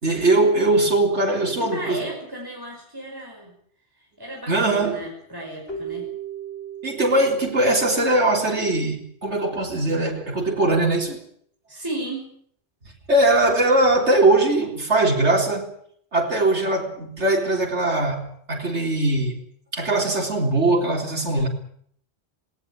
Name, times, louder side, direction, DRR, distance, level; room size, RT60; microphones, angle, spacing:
voice 1, 0.0-2.0 4.5-5.1 6.8-11.2 13.1-15.7 16.1-19.4 19.7-21.5, right 2 dB, 80° right, 4.1 m, -21 dB
voice 2, 1.6-3.5 4.0-6.1 11.7-12.3, right 1 dB, 20° right, 5.8 m, -34 dB
Keyboard (musical), 5.7-8.9, right 6 dB, 55° left, 3.7 m, -37 dB
19.5 x 19.0 x 8.8 m
omnidirectional pair, 1.2 m